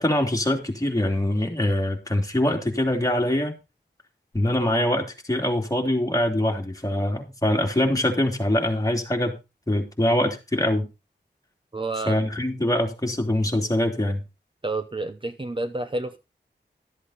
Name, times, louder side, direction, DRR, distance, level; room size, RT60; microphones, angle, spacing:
voice 1, 0.0-3.5 4.3-9.4 9.7-10.9 12.1-14.2, left 1 dB, 20° left, 2 dB, 2.9 m, -23 dB
voice 2, 11.7-12.2 14.6-16.2, right 2 dB, 30° right, 9 dB, 0.8 m, -29 dB
13.0 x 8.1 x 4.2 m, 0.27 s
wide cardioid pair, 100°, 18 cm